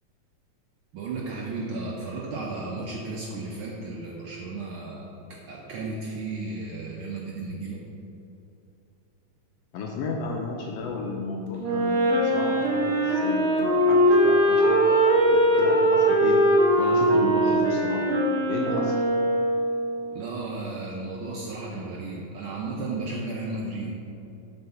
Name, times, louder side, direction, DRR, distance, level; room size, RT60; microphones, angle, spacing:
voice 1, 0.9-5.1 5.5-7.8 20.1-23.9, right 3 dB, 85° right, -3 dB, 1.1 m, -34 dB
voice 2, 9.7-16.4 16.8-18.1 18.5-19.0, left 4 dB, 80° left, 0 dB, 1.5 m, -33 dB
Wind instrument woodwind instrument, 11.6-19.9, right 1 dB, 65° right, 2.4 m, -21 dB
7.8 x 4.6 x 5.6 m, 2.8 s
omnidirectional pair, 3.4 m